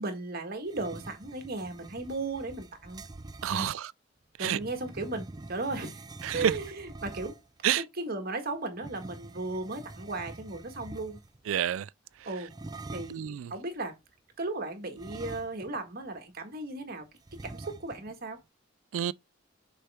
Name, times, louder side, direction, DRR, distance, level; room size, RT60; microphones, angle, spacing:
voice 1, 0.0-3.0 3.5-3.7 4.4-6.0 6.3-7.4 7.7-11.2 12.2-12.5 12.9-13.2 13.5-13.9 14.4-17.1 17.3-18.4, right 2 dB, 50° right, 1.5 m, -36 dB
sound 1, 0.6-3.6 4.4-7.6 8.8-11.4 12.5-13.3 15.0-15.9 16.2-16.3 17.3-18.1, right 2 dB, 20° right, 0.4 m, -45 dB
voice 2, 3.4-3.9 4.4-4.6 6.2-6.5 7.6-7.8 11.5-11.9 13.1-13.5 18.9-19.1, right 10 dB, 90° right, 0.4 m, -28 dB
6.5 x 4.4 x 3.5 m
head